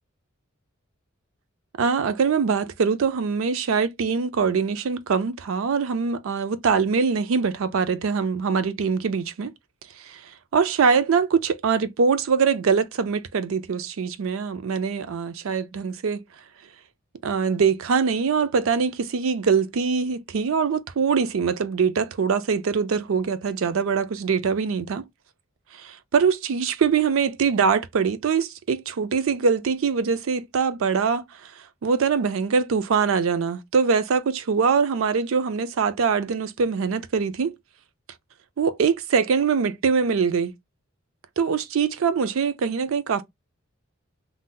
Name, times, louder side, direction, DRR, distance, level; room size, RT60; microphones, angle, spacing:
voice 1, 1.8-9.5 10.1-10.2 10.5-16.2 17.2-25.0 25.8-31.2 31.8-37.5 38.6-40.5 41.4-43.2, right 5 dB, 75° right, 0.4 m, -23 dB
2.6 x 2.0 x 3.7 m
head